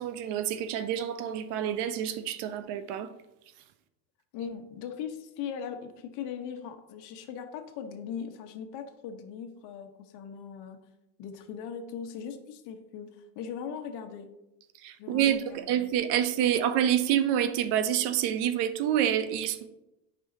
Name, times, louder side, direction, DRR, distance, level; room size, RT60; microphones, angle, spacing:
voice 1, 0.0-3.1 14.8-19.7, right 10 dB, 65° right, 0.8 m, -27 dB
voice 2, 4.3-10.8 11.2-14.3 15.0-15.8, left 7 dB, 65° left, 1.1 m, -39 dB
9.1 x 5.5 x 2.8 m
supercardioid pair, 100°, 44 cm